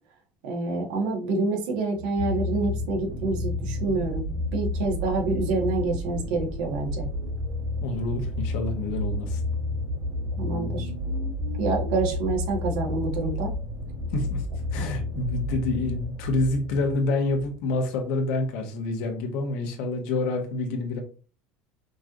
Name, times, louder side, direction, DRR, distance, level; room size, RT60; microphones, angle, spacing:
voice 1, 0.4-4.2 4.5-7.1 10.4-10.9 11.6-13.5 14.8-14.9, right 3 dB, 75° right, 0 dB, 1.5 m, -27 dB
sound 1, 2.0-17.6 18.4-18.5, left 1 dB, 40° right, 1.3 m, -31 dB
voice 2, 7.8-9.4 14.1-14.4 14.7-21.0, left 2 dB, 65° left, 4 dB, 1.2 m, -27 dB
5.3 x 3.2 x 2.6 m, 0.37 s
cardioid pair, 170°, 5 cm